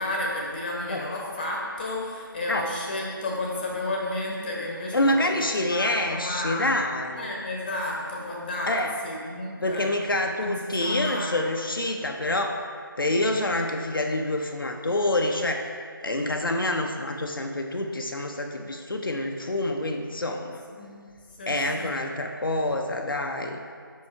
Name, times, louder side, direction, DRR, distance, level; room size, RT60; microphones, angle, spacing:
voice 1, 0.0-6.7 7.2-8.8 9.0-9.9 10.4-10.5 10.8-11.4 20.7-20.9 21.4-21.9, left 1 dB, 25° left, -3 dB, 0.9 m, -32 dB
voice 2, 4.9-7.3 8.7-8.9 9.6-12.6 13.0-15.7 16.0-20.6 21.5-23.6, left 1 dB, 70° left, 3 dB, 0.5 m, -27 dB
5.5 x 4.5 x 4.4 m, 2.1 s
figure-of-eight pair, 155°, 12 cm